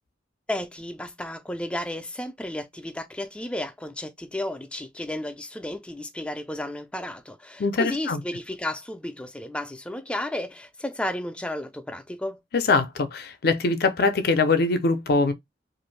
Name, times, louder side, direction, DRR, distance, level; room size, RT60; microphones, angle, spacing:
voice 1, 0.5-12.4, left 1 dB, 5° left, 0.3 m, -33 dB
voice 2, 7.6-8.2 12.5-15.3, left 3 dB, 60° left, 0.5 m, -22 dB
2.5 x 2.5 x 3.2 m
head